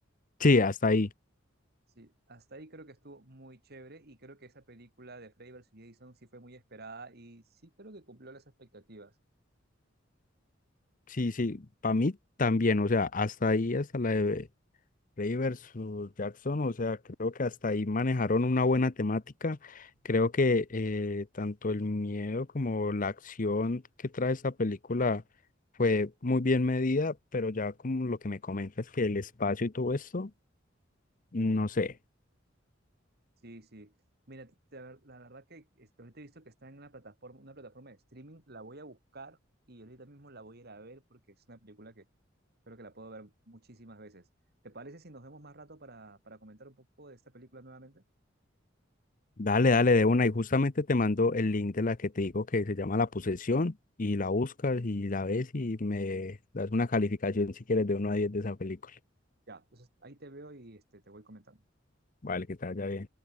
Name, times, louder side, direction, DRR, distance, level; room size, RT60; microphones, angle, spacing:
voice 1, 0.4-1.1 11.1-14.5 15.2-23.8 24.1-25.2 25.8-30.3 31.3-31.9 49.4-53.7 54.0-58.8 62.2-63.1, left 3 dB, 45° left, 0.8 m, -28 dB
voice 2, 1.9-9.1 33.4-33.9 34.3-39.4 39.7-42.1 42.7-44.3 44.6-48.0 59.5-61.6, right 2 dB, 55° right, 3.0 m, -51 dB
open air
head